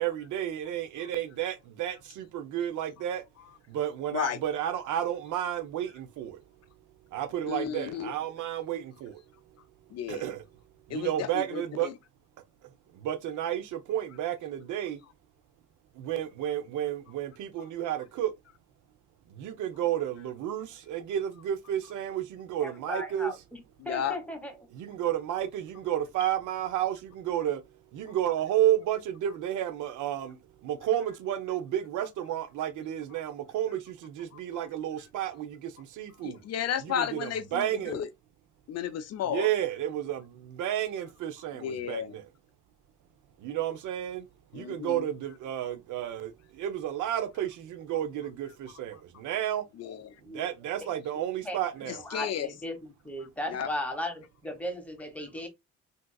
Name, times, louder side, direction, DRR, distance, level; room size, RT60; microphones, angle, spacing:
voice 1, 0.0-3.2 3.7-6.4 7.1-9.2 10.1-10.4 10.9-11.9 13.0-15.0 16.0-18.3 19.4-23.3 24.7-27.6 27.9-30.4 30.6-36.4 36.8-38.0 39.2-42.3 43.4-44.3 44.5-49.6 50.3-52.0, right 11 dB, 80° right, 0.6 m, -31 dB
voice 2, 7.5-8.1 9.9-10.3 10.9-11.9 23.9-24.2 36.2-38.1 38.7-39.5 41.6-42.1 44.5-45.0 49.8-50.1 51.9-52.5 53.5-53.7, left 9 dB, 55° left, 0.4 m, -33 dB
voice 3, 22.6-23.6 23.8-24.7 50.2-50.5 51.1-51.6 52.0-55.5, left 1 dB, 5° left, 1.2 m, -37 dB
3.5 x 2.7 x 2.2 m
cardioid pair, 90°, 30 cm